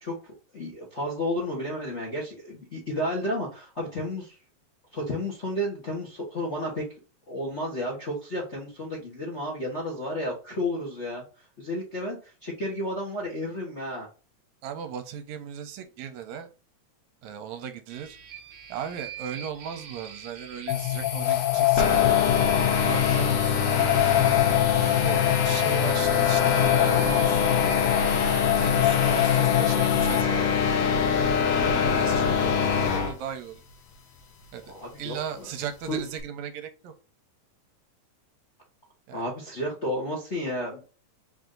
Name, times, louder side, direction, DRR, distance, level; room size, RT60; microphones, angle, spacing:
voice 1, 0.0-4.4 4.9-6.9 7.3-11.2 11.6-14.1 34.7-35.5 35.9-36.0 39.1-40.8, left 1 dB, 45° left, -2 dB, 0.9 m, -32 dB
voice 2, 14.6-16.5 17.2-18.2 18.7-22.2 22.8-23.9 24.8-27.4 28.6-31.1 31.5-33.6 34.5-36.9 39.1-39.2, right 8 dB, 80° right, 8 dB, 2.0 m, -37 dB
sound 1, 17.9-28.4, right 6 dB, 55° right, 1.3 m, -44 dB
sound 2, 20.7-30.2, left 14 dB, 85° left, 2.0 m, -24 dB
sound 3, 21.8-33.1, left 6 dB, 65° left, 1.7 m, -24 dB
4.9 x 2.7 x 3.7 m, 0.33 s
omnidirectional pair, 3.3 m